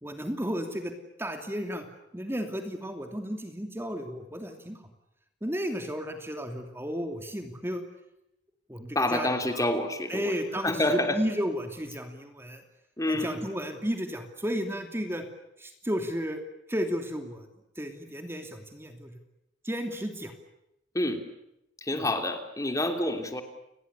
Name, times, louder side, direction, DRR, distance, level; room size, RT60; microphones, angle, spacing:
voice 1, 0.0-0.9 1.2-1.8 2.1-4.8 5.4-7.8 8.7-9.3 9.6-9.7 10.1-12.6 13.1-15.2 15.6-16.4 16.7-17.5 17.8-19.2 19.6-20.3 21.9-22.1, equal, 15° right, 5 dB, 2.8 m, -33 dB
voice 2, 8.9-10.3 10.6-11.2 13.0-13.4 20.9-21.2 21.8-23.4, left 1 dB, 20° left, 6 dB, 3.1 m, -28 dB
30.0 x 21.0 x 8.4 m, 0.83 s
head